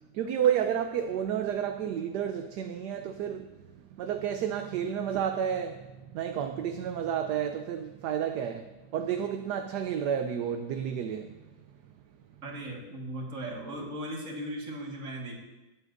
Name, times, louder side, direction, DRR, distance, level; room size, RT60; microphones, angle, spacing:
voice 1, 0.1-11.4, right 9 dB, 75° right, 6 dB, 1.2 m, -31 dB
voice 2, 12.4-15.3, right 1 dB, 50° right, -1 dB, 2.1 m, -37 dB
18.5 x 8.5 x 2.6 m, 1.1 s
omnidirectional pair, 1.8 m